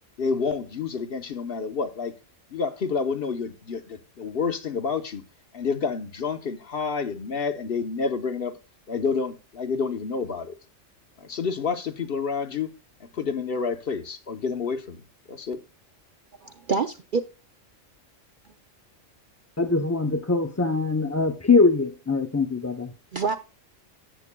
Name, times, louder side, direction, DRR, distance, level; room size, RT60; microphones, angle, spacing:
voice 1, 0.2-2.1 2.5-5.2 5.5-8.5 8.9-10.5 11.2-12.7 13.1-15.0 15.3-15.6, left 5 dB, 50° left, 1.0 m, -29 dB
voice 2, 16.4-17.2 18.4-18.5 23.1-23.4, right 5 dB, 55° right, 0.6 m, -26 dB
voice 3, 19.6-22.9, left 4 dB, 25° left, 0.4 m, -22 dB
13.5 x 8.5 x 2.2 m
omnidirectional pair, 1.3 m